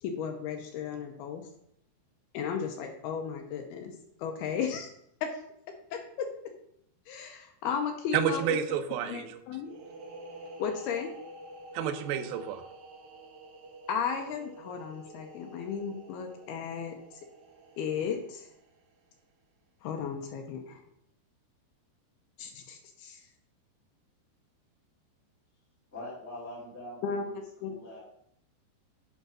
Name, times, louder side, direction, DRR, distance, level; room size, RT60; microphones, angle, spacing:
voice 1, 0.0-1.4 2.3-3.9 4.2-4.9 5.9-6.3 7.1-8.4 9.1-9.7 10.6-11.1 13.9-17.0 17.8-18.5 19.8-20.8 22.4-23.2 27.0-27.2 27.6-27.7, left 7 dB, 75° left, 4 dB, 2.4 m, -34 dB
voice 2, 8.1-9.4 11.7-12.6, right 8 dB, 80° right, 7 dB, 2.2 m, -30 dB
sound 1, 9.6-19.1, right 1 dB, 65° right, 2.0 m, -49 dB
voice 3, 25.9-28.0, left 1 dB, 20° left, -8 dB, 2.4 m, -44 dB
8.2 x 4.4 x 6.1 m, 0.73 s
omnidirectional pair, 5.1 m